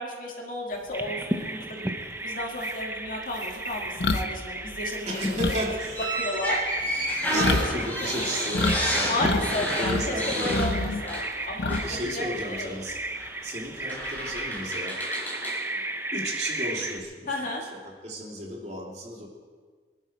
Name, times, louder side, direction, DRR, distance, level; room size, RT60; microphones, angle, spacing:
voice 1, 0.0-1.9 2.2-5.6 6.2-6.6 7.3-7.5 8.0-8.1 9.1-12.7 17.3-17.6, left 1 dB, 50° left, 0 dB, 2.4 m, -33 dB
Bird vocalization bird call bird song, 0.9-17.0, right 2 dB, 15° right, 0.8 m, -35 dB
sound 1, 2.1-2.2 2.6-8.8 9.1-10.1 10.4-12.1 12.4-12.6 14.0-14.6, left 2 dB, 80° left, 1.0 m, -29 dB
voice 2, 5.1-6.6 7.3-10.7 11.7-13.0 13.4-15.0 16.1-17.3 17.7-19.3, equal, 40° right, -2 dB, 3.0 m, -34 dB
sound 2, 5.9-11.4 11.7-11.9 13.1-13.3 13.9-15.6, equal, 10° left, 3.8 m, -30 dB
22.5 x 11.5 x 4.5 m, 1.5 s
head